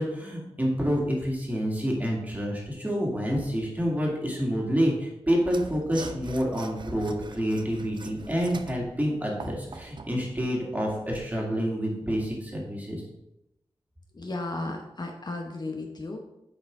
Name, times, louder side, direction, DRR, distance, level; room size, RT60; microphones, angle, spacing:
voice 1, 0.0-13.0, equal, 15° right, -2 dB, 2.0 m, -28 dB
Mechanisms / Sawing, 5.4-10.2, right 4 dB, 50° right, 0.5 m, -42 dB
voice 2, 14.1-16.2, left 2 dB, 45° left, 2 dB, 0.8 m, -34 dB
8.3 x 4.8 x 3.6 m, 0.89 s
wide cardioid pair, 80°, 10 cm